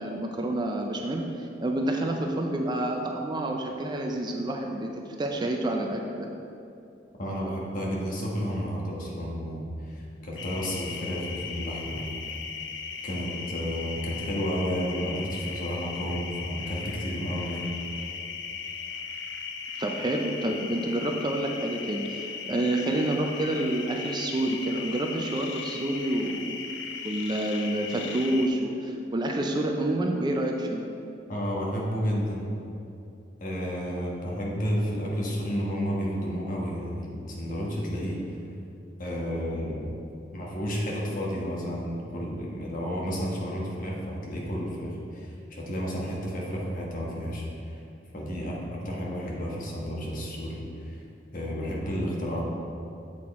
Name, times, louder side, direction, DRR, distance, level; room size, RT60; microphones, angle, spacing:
voice 1, 0.0-4.9 5.2-6.3 19.8-26.6 27.0-30.8, right 1 dB, 25° right, 2 dB, 0.4 m, -28 dB
voice 2, 7.2-12.1 13.0-17.7 31.3-32.5 33.4-38.2 39.0-39.9 40.3-47.8 48.1-51.0 51.3-52.4, equal, 45° left, -3 dB, 1.2 m, -31 dB
sound 1, 10.4-28.5, left 6 dB, 65° left, 0.5 m, -37 dB
7.4 x 4.2 x 4.2 m, 2.6 s
head